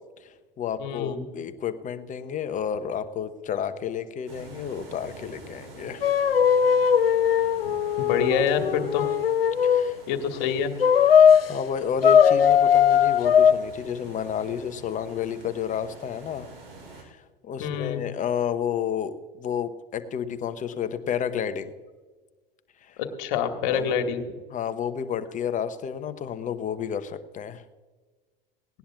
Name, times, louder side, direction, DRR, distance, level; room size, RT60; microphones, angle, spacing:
voice 1, 0.2-6.0 9.6-10.0 11.1-16.5 16.9-21.7 22.8-23.0 23.7-23.9 24.5-27.6, left 8 dB, 25° left, 10 dB, 1.0 m, -31 dB
voice 2, 0.8-1.2 8.0-9.0 10.1-10.7 17.6-18.0 23.2-24.2, left 7 dB, 55° left, 6 dB, 1.8 m, -26 dB
sound 1, 4.3-17.0, right 3 dB, 70° right, 3.8 m, -47 dB
sound 2, 6.0-9.9 10.8-11.5 12.0-13.5, left 8 dB, 80° left, 0.6 m, -19 dB
18.5 x 18.5 x 2.4 m, 1.3 s
figure-of-eight pair, 80°, 29 cm